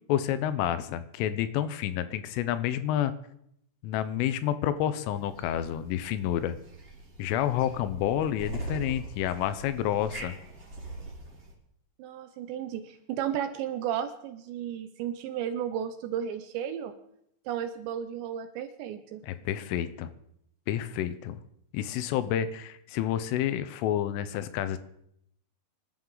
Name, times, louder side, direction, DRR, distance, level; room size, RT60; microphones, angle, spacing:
voice 1, 0.1-3.1 3.8-6.6 7.2-10.3 19.2-20.1 20.7-21.4 21.7-24.8, left 11 dB, 85° left, 12 dB, 3.3 m, -29 dB
sound 1, 5.1-11.5, right 2 dB, 20° right, 2.9 m, -42 dB
voice 2, 12.0-17.0 17.5-19.3, right 9 dB, 80° right, 9 dB, 2.7 m, -34 dB
24.5 x 12.5 x 3.9 m, 0.74 s
omnidirectional pair, 5.7 m